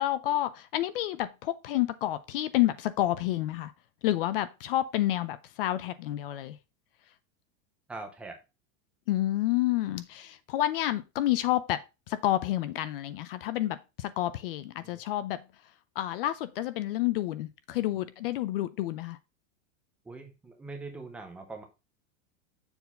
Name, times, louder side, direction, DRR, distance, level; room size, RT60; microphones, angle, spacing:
voice 1, 0.0-3.7 4.0-6.6 9.1-11.8 12.1-15.4 16.0-19.2, left 14 dB, 45° left, 0.5 m, -29 dB
voice 2, 7.9-8.4 14.8-15.0 20.1-21.6, right 3 dB, 5° right, 0.4 m, -42 dB
7.0 x 4.0 x 5.4 m
supercardioid pair, 170°, 39 cm